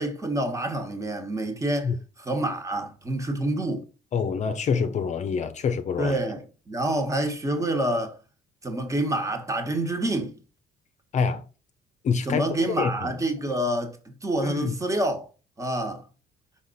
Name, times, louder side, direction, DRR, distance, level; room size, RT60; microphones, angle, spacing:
voice 1, 0.0-1.9 2.2-3.8 6.0-8.1 8.6-10.4 12.3-14.0 14.2-15.2 15.6-16.0, right 1 dB, 20° right, 1.5 m, -27 dB
voice 2, 4.1-6.1 11.1-11.4 12.0-12.4 12.8-13.1 14.4-14.8, left 6 dB, 45° left, 0.7 m, -26 dB
5.6 x 4.1 x 4.1 m
cardioid pair, 110°, 17 cm